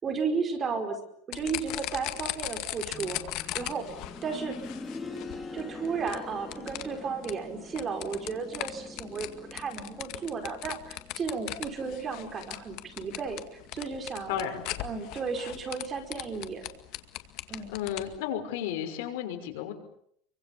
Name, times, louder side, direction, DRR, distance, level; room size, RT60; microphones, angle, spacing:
voice 1, 0.0-1.0 1.3-3.8 4.2-4.6 5.5-14.5 14.8-16.6 17.5-17.7, right 5 dB, 25° right, 6 dB, 5.0 m, -34 dB
sound 1, 1.3-18.2, left 17 dB, 60° left, 2.1 m, -39 dB
sound 2, 2.9-13.7 14.0-14.1 15.0-15.1, left 3 dB, 10° left, 4.0 m, -45 dB
voice 2, 14.3-14.7 17.7-19.7, left 10 dB, 80° left, 5 dB, 5.8 m, -33 dB
28.5 x 24.5 x 7.3 m, 0.69 s
supercardioid pair, 140°, 0 cm